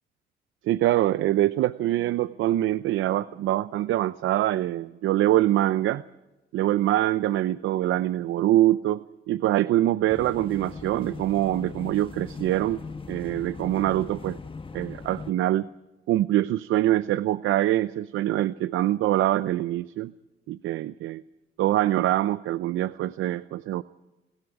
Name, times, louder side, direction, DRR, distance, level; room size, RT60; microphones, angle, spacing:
voice 1, 0.6-6.0 6.5-12.8 13.1-14.4 14.7-15.7 16.1-20.1 20.5-21.2 21.6-23.8, right 14 dB, 80° right, 15 dB, 0.6 m, -24 dB
sound 1, 10.1-15.3, left 4 dB, 25° left, 1.4 m, -40 dB
29.5 x 20.5 x 4.9 m, 1.1 s
cardioid pair, 90°, 20 cm